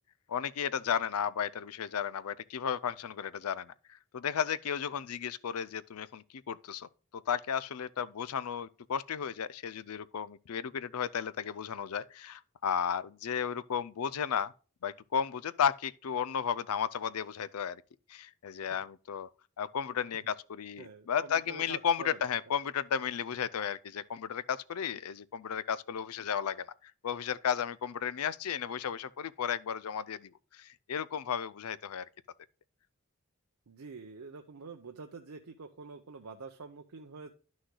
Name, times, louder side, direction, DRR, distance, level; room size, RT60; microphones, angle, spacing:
voice 1, 0.3-6.9 7.3-14.5 14.8-17.8 18.1-19.3 19.6-32.1, left 8 dB, 90° left, 0.5 m, -34 dB
voice 2, 20.8-22.2 33.7-37.3, right 4 dB, 90° right, 0.7 m, -46 dB
11.5 x 6.3 x 2.2 m
head